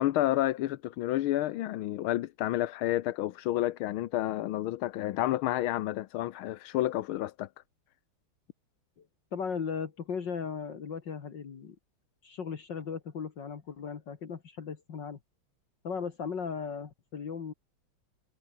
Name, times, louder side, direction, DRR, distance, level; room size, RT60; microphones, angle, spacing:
voice 1, 0.0-7.5, left 14 dB, 85° left, 1.6 m, -30 dB
voice 2, 9.3-11.8 12.2-15.2 15.8-17.5, left 6 dB, 60° left, 2.5 m, -37 dB
omnidirectional pair, 2.3 m